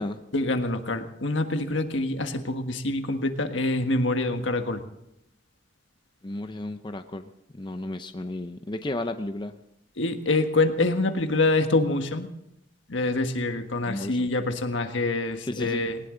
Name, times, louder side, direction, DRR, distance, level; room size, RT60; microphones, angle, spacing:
voice 1, 0.3-4.8 10.0-12.3 12.9-16.0, left 2 dB, 70° left, 6 dB, 1.6 m, -26 dB
voice 2, 6.2-7.3 7.6-9.5 13.9-14.3 15.5-15.8, left 1 dB, 25° left, 8 dB, 0.6 m, -33 dB
20.0 x 19.0 x 3.9 m, 0.84 s
head